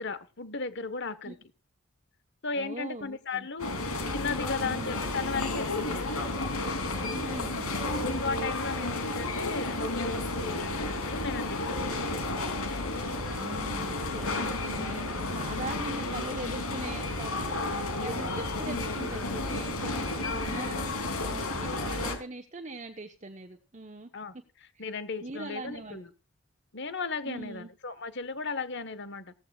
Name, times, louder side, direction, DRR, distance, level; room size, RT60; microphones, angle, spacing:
voice 1, 0.0-1.4 2.4-3.8 4.1-6.2 8.2-12.0 20.2-21.0 24.1-24.3 24.8-26.1 26.7-29.3, left 4 dB, 55° left, 13 dB, 1.4 m, -36 dB
voice 2, 2.5-3.5 4.6-5.0 7.1-7.7 13.3-24.1 24.7-24.9 25.2-26.0 27.2-27.7, right 2 dB, 35° right, 5 dB, 1.2 m, -41 dB
sound 1, 3.6-22.2, left 2 dB, 80° left, 3.4 m, -32 dB
17.5 x 14.5 x 2.5 m, 0.34 s
head